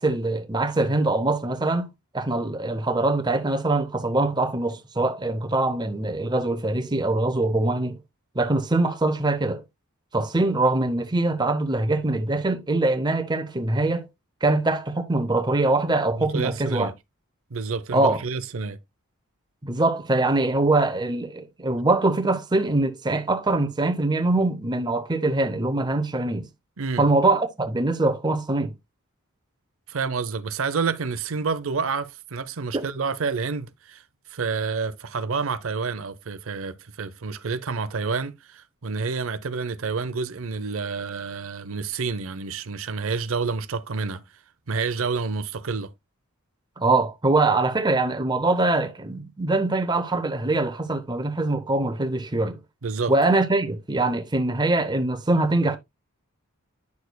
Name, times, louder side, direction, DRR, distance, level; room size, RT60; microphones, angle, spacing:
voice 1, 0.0-1.9 2.1-8.0 8.3-9.6 10.1-14.1 14.4-16.9 17.9-18.2 19.6-26.5 27.0-28.7 32.7-32.8 46.8-52.6 53.1-55.8, right 2 dB, 20° right, 0.7 m, -23 dB
voice 2, 16.2-16.9 17.5-18.8 26.8-27.0 29.9-34.0 34.3-44.2 44.7-45.9 52.8-53.1, right 4 dB, 65° right, 0.6 m, -29 dB
9.5 x 6.4 x 2.2 m
head